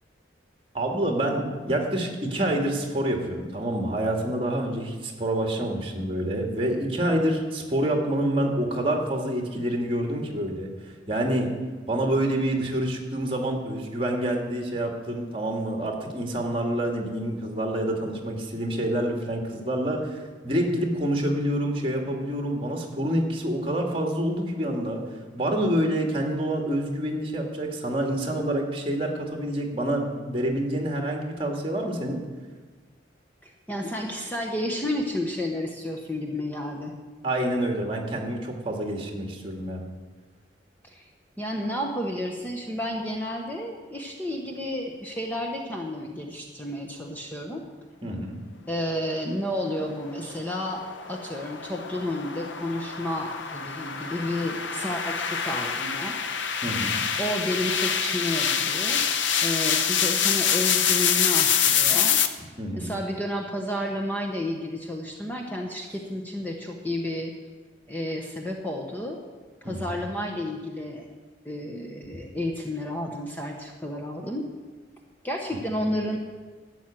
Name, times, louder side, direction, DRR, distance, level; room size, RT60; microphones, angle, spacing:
voice 1, 0.7-11.5 11.9-25.0 25.3-32.2 37.2-39.8 48.0-48.4 56.6-57.0 62.6-62.9 69.6-70.0 75.5-75.7, right 1 dB, 30° right, 2 dB, 2.0 m, -27 dB
voice 2, 33.4-36.9 40.8-41.1 41.4-47.6 48.7-50.8 51.1-56.2 57.2-59.1 59.4-62.2 62.8-67.3 67.9-69.2 69.6-71.1 71.4-74.4 75.2-76.2, left 1 dB, 10° left, 1 dB, 0.9 m, -31 dB
sound 1, 50.2-62.3, left 7 dB, 85° left, 0.9 m, -26 dB
12.0 x 7.3 x 9.0 m, 1.4 s
head